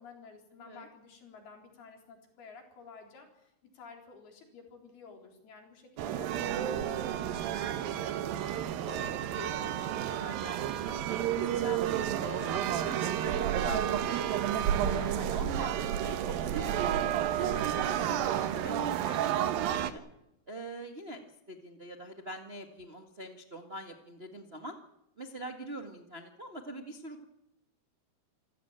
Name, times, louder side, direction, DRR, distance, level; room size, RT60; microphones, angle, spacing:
voice 1, 0.0-8.5 14.9-15.2, left 5 dB, 90° left, 3 dB, 5.9 m, -52 dB
sound 1, 6.0-19.9, right 10 dB, 75° right, 2.9 m, -31 dB
voice 2, 8.8-10.6 10.9-11.8 12.2-14.4 14.8-16.9 17.4-20.0 20.5-21.2 21.5-24.7 25.2-27.2, right 1 dB, 40° right, 4 dB, 0.8 m, -43 dB
27.0 x 16.0 x 8.9 m, 0.84 s
omnidirectional pair, 4.3 m